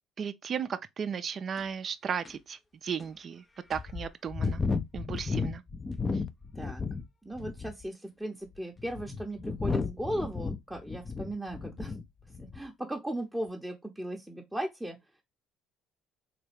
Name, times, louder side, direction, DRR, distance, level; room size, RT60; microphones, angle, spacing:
voice 1, 0.2-3.4 3.7-4.6 4.9-5.6, right 7 dB, 45° right, 0.4 m, -35 dB
sound 1, 1.6-1.7 2.2-2.3 3.0-3.1 3.7-7.1 7.4-7.9 8.6-12.0 12.3-12.7, left 4 dB, 25° left, 0.5 m, -33 dB
voice 2, 7.2-12.0 12.3-15.0, right 1 dB, 5° right, 0.7 m, -37 dB
4.0 x 2.2 x 3.2 m
hypercardioid pair, 65°, 0 cm